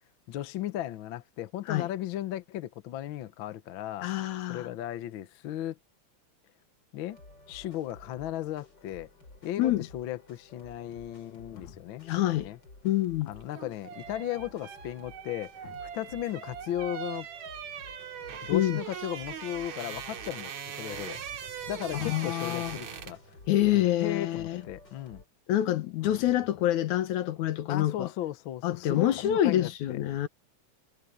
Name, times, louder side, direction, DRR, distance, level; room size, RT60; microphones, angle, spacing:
voice 1, 0.3-4.1 4.5-5.8 6.9-7.2 7.5-9.1 9.4-12.6 13.3-17.3 18.4-21.2 21.7-23.2 23.7-25.2 27.7-30.0, left 13 dB, 70° left, 1.2 m, -36 dB
voice 2, 4.0-4.7 9.6-9.9 11.5-11.7 12.1-12.5 12.8-13.3 18.5-18.8 21.9-22.8 23.5-24.6 25.5-28.1 28.6-30.3, left 13 dB, 85° left, 2.6 m, -27 dB
sound 1, 7.1-25.3, left 2 dB, 35° left, 6.4 m, -53 dB
sound 2, 13.3-23.3 23.6-23.8, right 8 dB, 70° right, 3.3 m, -41 dB
omnidirectional pair, 3.3 m